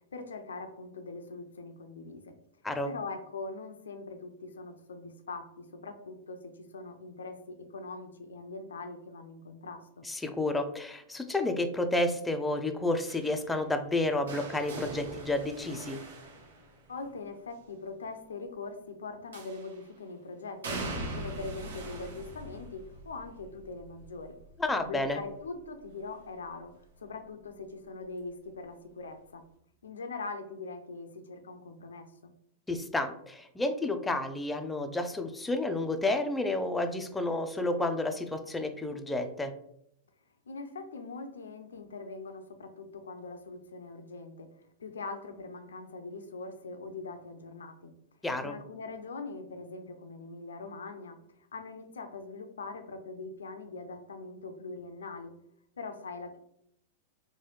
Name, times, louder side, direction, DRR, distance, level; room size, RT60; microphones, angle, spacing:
voice 1, 0.1-2.4 2.9-10.0 16.9-20.8 21.1-24.4 24.8-26.7 27.0-29.4 29.8-32.3 40.5-44.5 44.8-47.9 48.4-51.2 51.5-55.3 55.8-56.4, left 3 dB, 90° left, 7 dB, 0.4 m, -42 dB
voice 2, 10.0-16.0 24.6-25.2 32.7-39.5 48.2-48.6, left 2 dB, 10° left, 7 dB, 0.4 m, -31 dB
sound 1, 13.1-17.1 19.3-19.9 20.6-26.4 26.8-27.2 28.4-28.5, right 2 dB, 85° right, 0.7 m, -42 dB
3.1 x 2.2 x 3.1 m, 0.74 s
hypercardioid pair, 115°, 0 cm